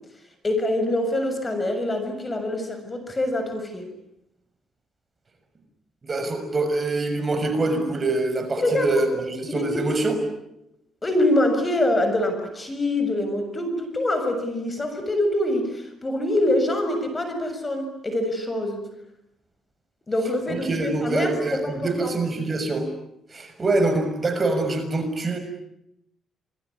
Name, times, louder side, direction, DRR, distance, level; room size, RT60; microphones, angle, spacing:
voice 1, 0.4-3.8 8.6-8.9 9.5-9.9 11.0-18.9 20.1-22.1, left 1 dB, 25° left, 7 dB, 7.0 m, -25 dB
voice 2, 6.0-10.2 20.5-22.9 23.3-25.4, right 2 dB, 30° right, 7 dB, 6.4 m, -25 dB
28.0 x 21.5 x 9.9 m, 0.81 s
cardioid pair, 90°, 0 cm